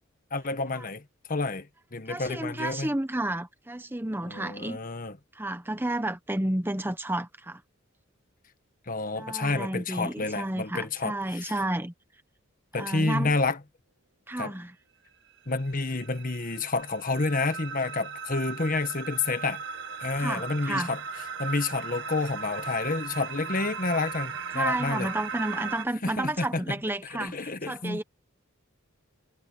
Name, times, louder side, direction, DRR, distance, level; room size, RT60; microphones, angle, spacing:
voice 1, 0.3-1.0 1.3-2.9 4.3-5.2 8.9-11.5 12.7-13.6 14.4-14.5 15.5-19.6 20.0-21.0 21.4-25.1 26.0-26.7 27.1-28.0, left 3 dB, 40° left, 1.4 m, -29 dB
voice 2, 2.1-4.8 5.3-7.6 9.2-11.9 12.8-13.4 14.3-14.7 20.2-20.9 24.5-28.0, right 1 dB, 10° right, 0.9 m, -31 dB
sound 1, 15.3-25.9, right 5 dB, 60° right, 1.6 m, -38 dB
head